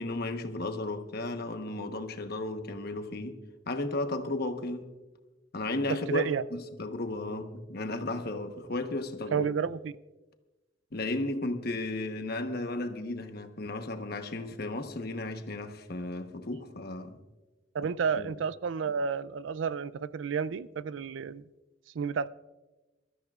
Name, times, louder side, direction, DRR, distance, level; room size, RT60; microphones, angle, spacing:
voice 1, 0.0-3.4 3.7-4.9 5.5-6.2 6.5-9.5 10.9-17.2 18.2-18.3, left 2 dB, 55° left, 1.1 m, -34 dB
voice 2, 5.9-6.4 9.3-9.9 17.7-21.4 21.9-22.3, right 6 dB, 80° right, 0.4 m, -31 dB
23.0 x 13.0 x 2.4 m
head